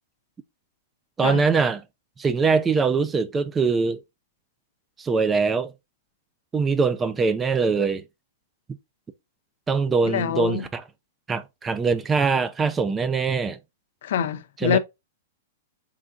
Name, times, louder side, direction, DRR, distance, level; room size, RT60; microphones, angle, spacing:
voice 1, 1.2-1.8 2.2-4.0 5.0-5.7 6.5-8.0 9.7-10.8 11.3-13.6 14.6-14.8, right 4 dB, 10° right, 0.4 m, -22 dB
voice 2, 10.0-10.6 14.0-14.8, left 9 dB, 55° left, 0.6 m, -25 dB
4.4 x 3.8 x 2.4 m
hypercardioid pair, 165°, 0 cm